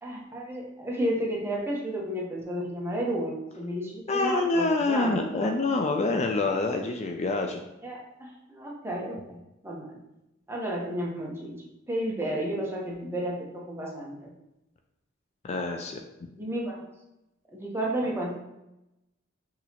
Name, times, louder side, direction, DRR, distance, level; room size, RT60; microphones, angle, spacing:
voice 1, 0.0-5.8 7.8-9.4 9.6-10.0 10.5-14.3 16.3-16.9 17.5-18.3, right 1 dB, 15° right, -3 dB, 0.8 m, -32 dB
voice 2, 4.1-7.6 15.4-16.0, left 3 dB, 35° left, 4 dB, 0.3 m, -26 dB
6.1 x 2.9 x 2.9 m, 0.91 s
head